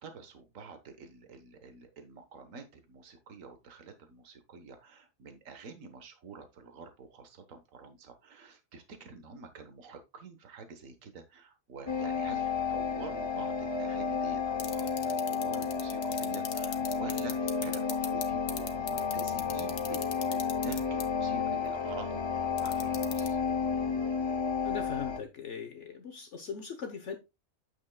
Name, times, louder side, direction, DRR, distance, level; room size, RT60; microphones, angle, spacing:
voice 1, 0.0-23.4, right 4 dB, 65° right, 1.6 m, -48 dB
sound 1, 11.9-25.2, left 6 dB, 35° left, 0.5 m, -32 dB
sound 2, 14.6-18.2 18.5-21.0 22.6-23.3, left 8 dB, 80° left, 1.4 m, -36 dB
voice 2, 24.6-27.2, left 6 dB, 60° left, 1.2 m, -40 dB
9.0 x 7.2 x 2.3 m
omnidirectional pair, 1.5 m